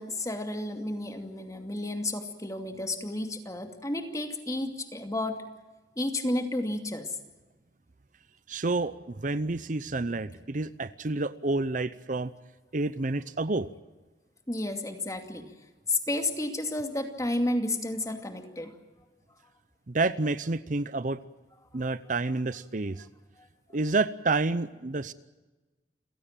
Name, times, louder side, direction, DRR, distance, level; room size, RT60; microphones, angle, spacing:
voice 1, 0.0-5.4 6.0-7.2 14.5-15.5 15.9-18.7, left 1 dB, 20° left, 6 dB, 2.6 m, -31 dB
voice 2, 8.5-12.3 12.7-13.7 19.9-21.2 21.7-23.1 23.7-25.1, right 3 dB, 45° right, 15 dB, 0.7 m, -29 dB
29.0 x 17.0 x 9.0 m, 1.2 s
head